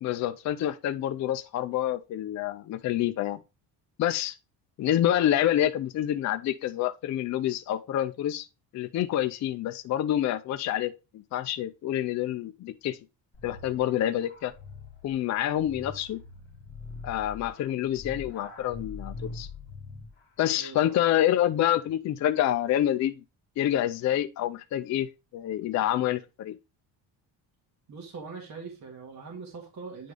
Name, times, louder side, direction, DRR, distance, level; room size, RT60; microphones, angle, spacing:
voice 1, 0.0-3.4 4.0-4.4 4.8-8.5 8.7-13.0 13.4-14.5 15.0-16.2 17.0-19.5 20.4-23.2 23.6-26.6, left 12 dB, 40° left, 0.4 m, -27 dB
sound 1, 13.3-20.2, left 3 dB, 25° left, 1.8 m, -43 dB
voice 2, 20.5-21.0 27.9-30.1, right 4 dB, 40° right, 1.9 m, -42 dB
9.3 x 3.8 x 3.3 m
cardioid pair, 175°, 44 cm